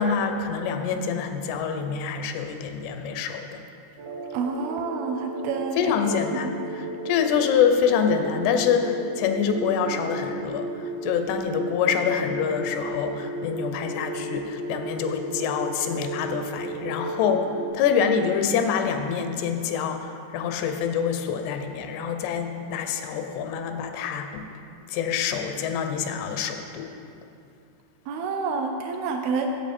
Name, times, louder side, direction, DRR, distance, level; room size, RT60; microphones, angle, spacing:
voice 1, 0.0-3.6 5.7-24.4 24.9-26.9, left 7 dB, 85° left, 7 dB, 2.7 m, -26 dB
sound 1, 4.0-17.7, right 1 dB, 60° right, 1.6 m, -34 dB
voice 2, 4.3-5.8 6.3-6.5 28.1-29.5, right 5 dB, 80° right, 4 dB, 2.3 m, -28 dB
10.5 x 7.8 x 4.3 m, 2.6 s
omnidirectional pair, 4.6 m